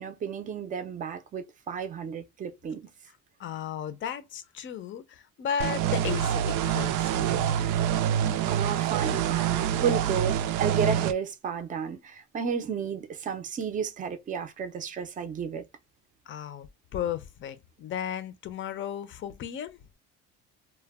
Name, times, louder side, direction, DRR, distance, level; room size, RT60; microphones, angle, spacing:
voice 1, 0.0-2.9 8.5-15.6, right 6 dB, 25° right, 0.5 m, -32 dB
voice 2, 3.4-7.7 16.3-16.7 16.9-19.8, left 9 dB, 40° left, 0.5 m, -35 dB
sound 1, 5.6-11.1, right 10 dB, 75° right, 0.5 m, -26 dB
2.2 x 2.2 x 3.4 m
cardioid pair, 140°, 31 cm